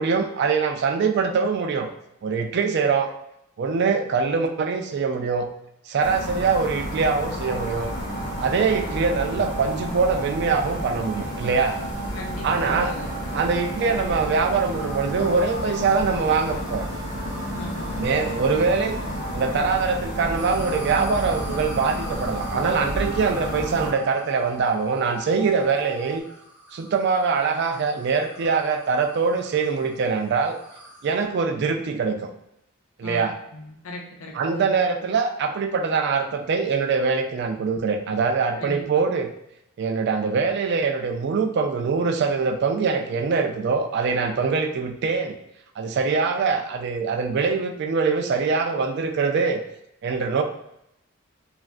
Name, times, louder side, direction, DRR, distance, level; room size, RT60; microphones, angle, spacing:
voice 1, 0.0-1.9 2.2-3.1 3.6-5.5 5.9-7.9 8.4-11.8 12.4-13.0 13.3-16.8 18.0-19.0 19.3-26.2 26.7-30.6 31.0-32.3 33.0-33.3 34.3-39.3 39.8-45.4 45.8-49.6 50.0-50.4, right 5 dB, 50° right, 5 dB, 0.3 m, -23 dB
sound 1, 6.0-23.9, equal, 40° left, 0.8 m, -31 dB
sound 2, 7.4-26.2, right 4 dB, 85° right, 0.7 m, -39 dB
sound 3, 11.4-20.0 20.4-31.2, equal, 10° right, 0.7 m, -45 dB
voice 2, 12.1-13.1 17.5-18.1 33.0-34.7 38.6-38.8, left 1 dB, 70° left, 0 dB, 0.6 m, -38 dB
3.1 x 2.4 x 2.4 m, 0.79 s
head